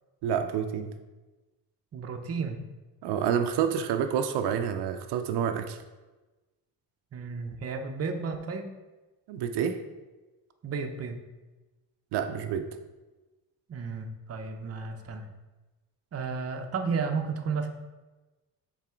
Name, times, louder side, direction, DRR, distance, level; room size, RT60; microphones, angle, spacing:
voice 1, 0.2-0.9 3.0-5.8 9.3-9.8 12.1-12.7, right 8 dB, 80° right, 7 dB, 0.6 m, -28 dB
voice 2, 1.9-2.6 7.1-8.6 10.6-11.2 13.7-15.2 16.1-17.7, right 5 dB, 35° right, 5 dB, 0.7 m, -33 dB
6.0 x 4.1 x 4.4 m, 1.2 s
cardioid pair, 115°, 40 cm